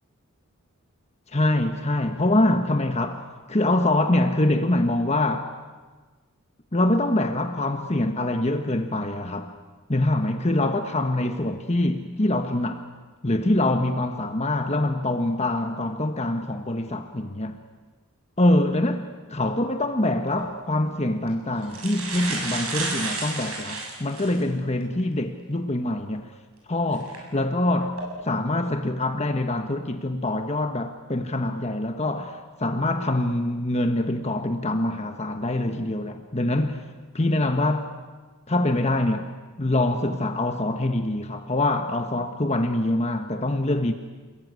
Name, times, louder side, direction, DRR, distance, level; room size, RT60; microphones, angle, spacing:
voice 1, 1.3-5.5 6.7-9.5 9.9-12.8 13.2-17.6 18.4-26.3 26.7-36.8 37.1-37.9 38.5-39.3 39.6-43.9, left 1 dB, 30° left, 1.2 m, -24 dB
sound 1, 20.3-20.4 21.3-21.4 21.6-24.4 25.0-25.1 26.9-27.2 27.8-28.0, right 3 dB, 80° right, 7.6 m, -31 dB
28.5 x 21.0 x 9.6 m
head